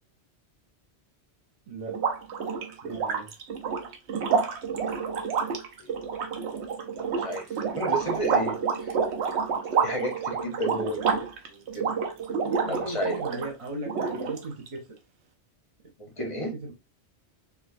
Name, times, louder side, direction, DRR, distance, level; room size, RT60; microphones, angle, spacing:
voice 1, 1.7-2.0 2.8-3.3 10.6-11.0 12.4-14.8 16.2-16.7, right 2 dB, 40° right, -1 dB, 0.6 m, -38 dB
sound 1, 1.9-13.5 13.9-14.7, right 5 dB, 75° right, 0.9 m, -28 dB
voice 2, 7.7-8.9 9.8-12.0 12.7-13.2 16.0-16.5, equal, 35° left, 4 dB, 0.7 m, -33 dB
4.4 x 2.1 x 2.5 m, 0.25 s
omnidirectional pair, 1.2 m